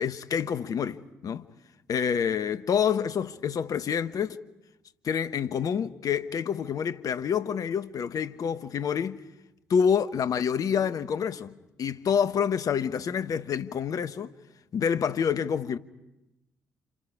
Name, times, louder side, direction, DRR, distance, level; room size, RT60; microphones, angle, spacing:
voice 1, 0.0-1.4 1.9-4.4 5.0-9.2 9.7-11.5 11.8-14.3 14.7-15.8, left 7 dB, 50° left, 1.1 m, -27 dB
30.0 x 28.5 x 4.9 m
figure-of-eight pair, 45°, 8 cm